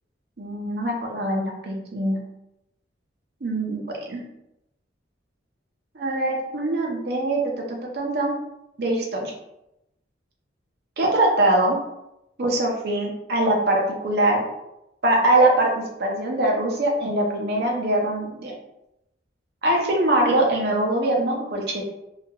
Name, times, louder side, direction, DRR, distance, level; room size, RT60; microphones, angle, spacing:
voice 1, 0.4-2.2 3.4-4.2 5.9-7.4 7.7-8.3 8.8-9.3 11.0-11.8 12.4-14.4 15.0-18.5 19.6-21.8, right 1 dB, 55° right, 0 dB, 0.6 m, -22 dB
2.7 x 2.4 x 2.3 m, 0.86 s
head